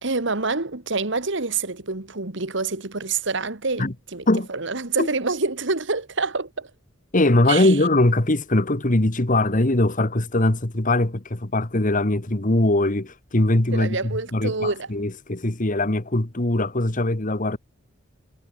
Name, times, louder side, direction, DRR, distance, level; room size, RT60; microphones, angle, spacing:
voice 1, 0.0-6.7 7.5-7.8 13.7-14.9, right 3 dB, 65° right, 2.0 m, -27 dB
voice 2, 7.1-17.6, left 1 dB, 40° left, 1.8 m, -21 dB
head